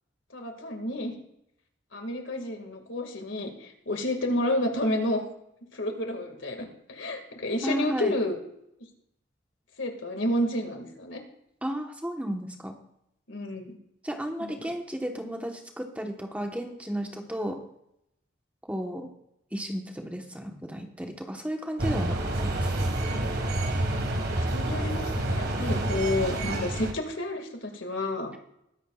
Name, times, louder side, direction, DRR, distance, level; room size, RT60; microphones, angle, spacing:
voice 1, 0.3-1.1 1.9-5.2 5.7-8.4 9.8-11.2 13.3-13.8 14.4-14.6 24.1-24.2 24.5-28.3, left 1 dB, 75° left, 4 dB, 2.1 m, -30 dB
voice 2, 7.6-8.1 11.6-12.7 14.0-17.6 18.7-19.1 19.5-22.9, equal, 5° right, 3 dB, 1.2 m, -33 dB
sound 1, 21.8-26.9, right 1 dB, 55° right, 1.8 m, -28 dB
21.0 x 10.0 x 2.4 m, 0.78 s
head